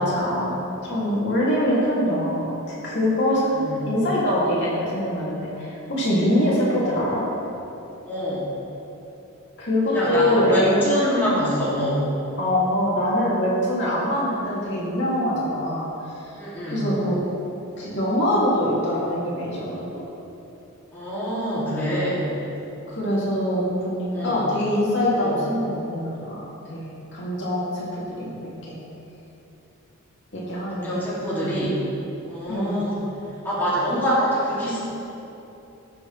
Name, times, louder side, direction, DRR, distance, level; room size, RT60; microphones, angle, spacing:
voice 1, 0.0-3.5 3.9-7.2 9.6-10.8 12.4-16.3 16.7-17.2 17.8-20.0 22.9-28.8 30.3-31.1 32.5-32.8, left 1 dB, 55° left, -7 dB, 2.7 m, -24 dB
voice 2, 8.1-8.5 9.9-12.1 16.4-16.9 20.9-22.3 24.1-24.4 25.2-25.3 30.7-31.8 32.3-33.0 33.4-34.8, equal, 10° left, -10 dB, 2.5 m, -25 dB
18.0 x 6.9 x 3.3 m, 3.0 s
head